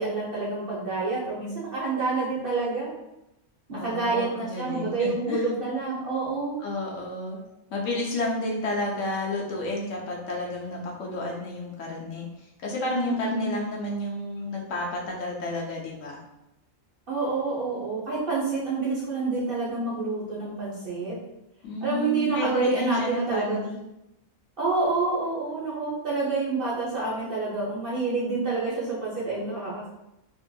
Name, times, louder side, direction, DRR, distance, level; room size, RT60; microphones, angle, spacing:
voice 1, 0.0-2.9 3.7-6.6 12.9-13.6 17.1-21.2 21.8-23.6 24.6-29.9, right 3 dB, 50° right, -6 dB, 0.7 m, -28 dB
voice 2, 3.7-5.5 6.6-7.4 7.7-16.2 21.6-23.8, left 2 dB, 70° left, -2 dB, 0.9 m, -31 dB
2.8 x 2.6 x 2.2 m, 0.89 s
omnidirectional pair, 1.5 m